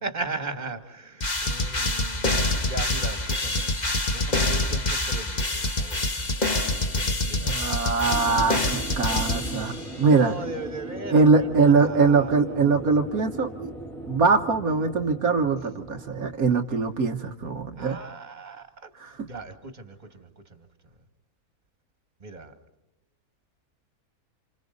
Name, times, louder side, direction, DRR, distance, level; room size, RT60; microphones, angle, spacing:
voice 1, 0.0-2.3 2.7-3.7 4.1-6.1 6.4-7.7 10.1-12.6 17.8-20.7 22.2-22.5, right 2 dB, 30° right, 8 dB, 2.1 m, -38 dB
sound 1, 1.2-10.0, left 2 dB, 30° left, 1.7 m, -26 dB
voice 2, 7.3-10.3 11.1-13.7 14.1-18.0 19.0-19.3, right 4 dB, 70° right, 3 dB, 1.6 m, -22 dB
sound 2, 8.1-16.4, right 2 dB, ahead, 2.2 m, -39 dB
29.5 x 27.5 x 4.0 m, 0.97 s
omnidirectional pair, 1.6 m